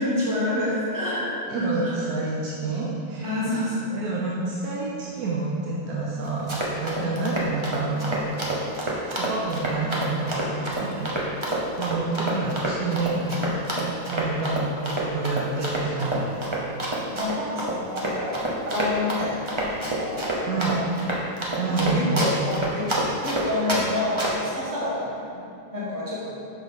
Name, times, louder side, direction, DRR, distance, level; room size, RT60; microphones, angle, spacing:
voice 1, 0.0-2.0 3.2-3.9 6.9-7.2 14.6-14.7 17.0-20.8 21.7-26.4, left 1 dB, 15° right, -7 dB, 1.1 m, -29 dB
voice 2, 1.5-3.3 3.9-8.2 9.1-11.5 11.8-13.7 14.1-16.5 20.5-20.8 21.6-22.2, right 3 dB, 65° right, -4 dB, 1.1 m, -28 dB
Run, 6.3-23.8 24.2-24.5, right 1 dB, 40° right, 0.4 m, -28 dB
6.3 x 4.9 x 4.1 m, 2.7 s
omnidirectional pair, 2.0 m